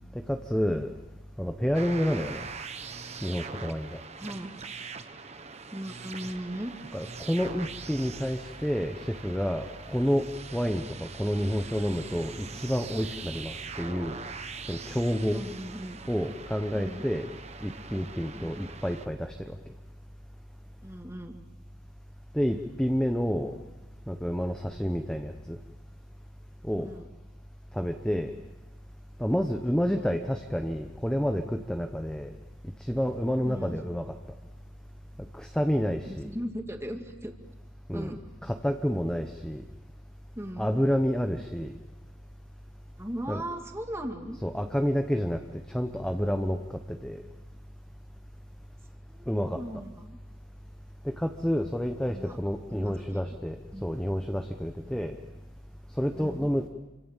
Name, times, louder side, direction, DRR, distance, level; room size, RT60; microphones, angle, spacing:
voice 1, 0.3-0.9 1.4-2.4 3.2-4.0 6.9-14.2 14.7-15.4 16.1-17.3 17.6-19.6 22.3-23.5 24.1-25.6 26.6-26.9 27.7-28.3 29.2-32.3 32.8-34.1 35.3-36.3 37.9-38.1 38.4-39.6 40.6-41.8 43.3-43.4 44.4-45.4 45.7-47.2 49.3-49.6 51.0-55.1 56.0-56.7, equal, 5° left, 5 dB, 1.0 m, -29 dB
sound 1, 1.7-19.1, right 5 dB, 35° right, 1.2 m, -42 dB
voice 2, 4.2-4.6 5.7-6.7 15.3-16.0 16.7-17.0 18.3-18.6 20.8-21.3 26.8-27.1 29.9-30.2 33.4-33.8 36.1-37.3 37.9-38.2 40.4-40.7 43.0-44.4 49.1-50.2 52.1-52.4 52.7-53.4 53.7-53.8 54.8-55.0 56.1-56.5, equal, 15° right, 4 dB, 2.1 m, -38 dB
28.0 x 25.5 x 7.4 m, 1.1 s
head